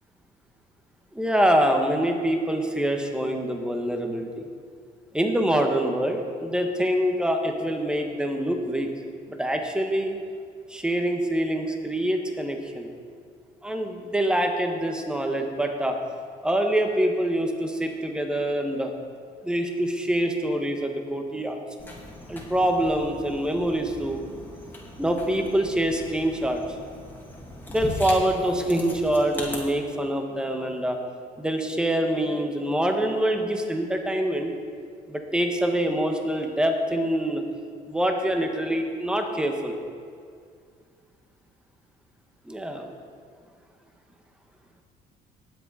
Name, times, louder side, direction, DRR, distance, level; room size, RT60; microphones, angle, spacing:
voice 1, 1.1-4.5 5.1-8.9 9.3-10.2 10.7-12.9 13.6-16.0 16.4-18.9 19.4-21.6 22.3-24.2 25.0-26.6 27.7-31.0 31.4-34.5 35.1-37.4 37.9-39.8 42.4-42.9, right 1 dB, 5° right, 3 dB, 1.4 m, -25 dB
sound 1, 21.8-29.6, left 1 dB, 10° left, 2.5 m, -39 dB
19.5 x 7.8 x 4.2 m, 2.2 s
cardioid pair, 110°, 17 cm